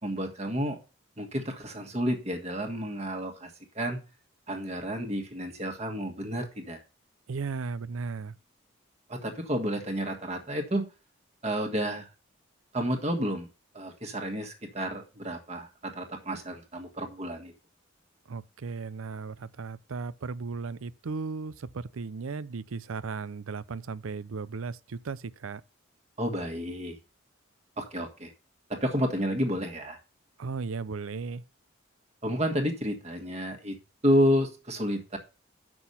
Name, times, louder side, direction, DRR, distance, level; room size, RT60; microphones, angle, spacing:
voice 1, 0.0-0.8 1.2-4.0 4.5-6.8 9.1-10.9 11.4-12.1 12.7-13.5 13.7-17.5 26.2-27.0 27.8-28.3 28.7-30.0 32.2-33.8 34.0-35.2, equal, 30° right, 1.6 m, -30 dB
voice 2, 7.3-8.3 18.3-25.6 30.4-31.4, right 4 dB, 85° right, 0.5 m, -36 dB
8.0 x 6.2 x 5.6 m
head